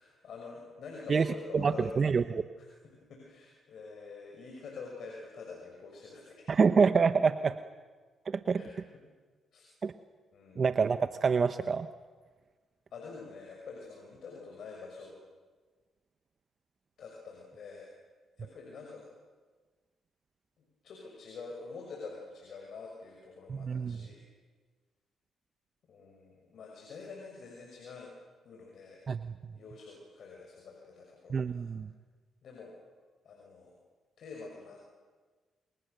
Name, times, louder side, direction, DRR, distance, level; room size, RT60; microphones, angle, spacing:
voice 1, 0.0-6.6 8.6-9.0 9.5-9.7 10.3-10.6 12.9-15.2 17.0-17.9 18.4-19.1 20.6-24.2 25.9-28.1 28.4-29.0 29.5-31.7 32.4-32.7 33.2-33.8 34.2-34.8, left 4 dB, 65° left, -1 dB, 6.3 m, -47 dB
voice 2, 1.5-2.4 6.5-7.6 8.3-8.6 9.8-9.9 10.6-11.9 23.5-24.0 29.1-29.5 31.3-31.9, right 5 dB, 45° right, 11 dB, 0.9 m, -27 dB
29.0 x 26.0 x 6.8 m, 1.4 s
cardioid pair, 70°, 0 cm